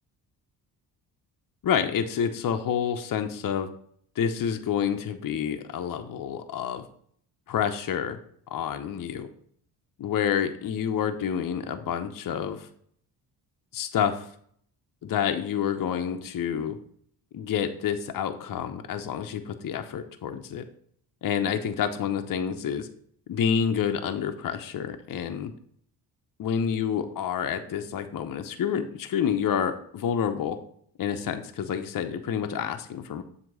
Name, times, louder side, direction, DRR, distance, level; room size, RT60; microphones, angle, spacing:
voice 1, 1.6-3.7 4.2-6.8 7.5-8.2 8.5-9.3 10.0-12.7 13.7-14.2 15.0-16.8 17.3-20.6 21.2-22.9 23.3-25.5 26.4-30.6 31.0-33.2, left 8 dB, 50° left, 6 dB, 0.8 m, -28 dB
7.6 x 3.0 x 5.4 m, 0.63 s
supercardioid pair, 65°, 42 cm